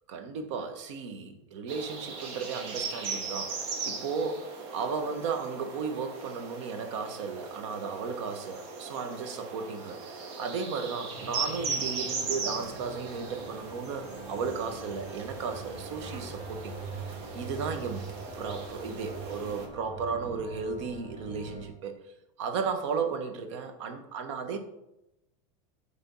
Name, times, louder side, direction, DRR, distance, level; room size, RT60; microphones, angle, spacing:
voice 1, 0.1-17.1 17.3-18.1 18.3-22.0 22.4-24.6, right 5 dB, 70° right, 7 dB, 1.1 m, -35 dB
sound 1, 1.7-19.7, right 4 dB, 45° right, 1.2 m, -38 dB
sound 2, 11.1-21.7, right 3 dB, 5° left, 2.6 m, -43 dB
8.3 x 3.6 x 5.4 m, 0.87 s
supercardioid pair, 175°, 16 cm